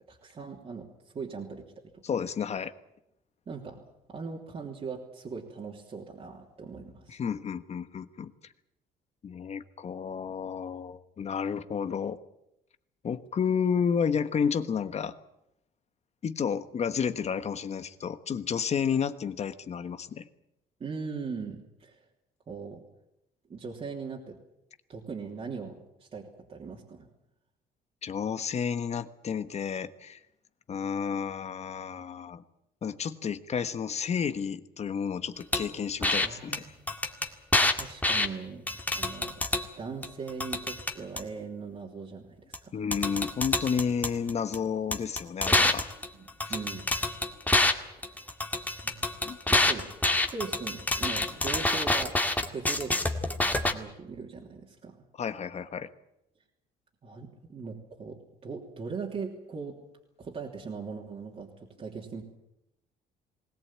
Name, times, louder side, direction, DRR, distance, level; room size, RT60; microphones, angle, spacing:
voice 1, 0.1-0.9 1.1-2.0 3.5-7.2 20.8-22.0 22.5-22.8 23.5-24.4 24.9-27.1 36.0-36.8 37.2-37.4 37.7-39.4 39.8-42.5 46.1-46.9 48.0-48.3 48.8-49.0 49.5-52.2 52.5-53.0 53.4-54.9 57.0-59.8 60.2-62.2, right 5 dB, 35° right, -2 dB, 3.1 m, -40 dB
voice 2, 2.0-2.7 7.1-8.3 9.2-12.2 13.0-15.1 16.2-20.3 28.0-30.2 30.7-32.4 32.8-36.6 42.7-45.9 46.5-46.6 49.2-49.4 55.2-55.9, left 7 dB, 40° left, 11 dB, 1.3 m, -31 dB
sound 1, 35.5-35.6 36.0-36.3 36.5-36.6 36.9-38.3 38.7-39.6 40.0-41.2 42.5-42.6 42.9-44.6 44.9-47.7 48.0-53.7, left 2 dB, 10° left, 2.0 m, -27 dB
20.5 x 18.0 x 8.8 m, 0.84 s
cardioid pair, 110°, 17 cm